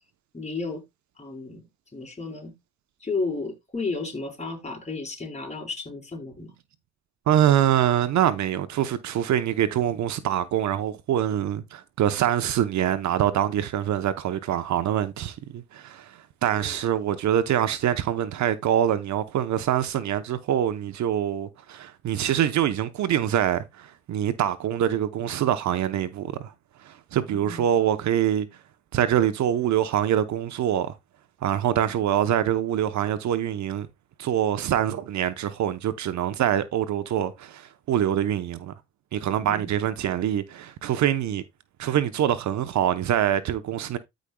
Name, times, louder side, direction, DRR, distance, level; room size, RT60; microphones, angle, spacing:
voice 1, 0.3-0.8 1.2-1.6 1.9-2.5 3.0-6.5 16.4-16.8 27.3-27.6 39.4-39.7, left 3 dB, 20° left, 4.3 m, -33 dB
voice 2, 7.3-26.5 26.8-28.5 28.9-31.0 31.4-33.9 34.2-38.7 39.1-41.4 41.8-44.0, right 10 dB, 65° right, 0.9 m, -24 dB
13.5 x 5.2 x 2.3 m
cardioid pair, 90°, 30 cm